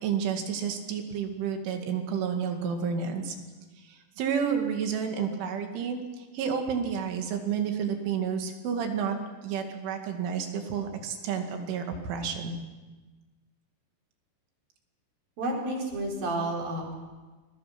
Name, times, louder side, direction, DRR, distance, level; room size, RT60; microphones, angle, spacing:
voice 1, 0.0-3.4 3.8-9.2 9.4-12.6, right 7 dB, 85° right, 4 dB, 4.7 m, -30 dB
voice 2, 15.4-16.9, right 1 dB, 50° right, -1 dB, 6.2 m, -31 dB
28.0 x 21.5 x 6.0 m, 1.2 s
omnidirectional pair, 5.4 m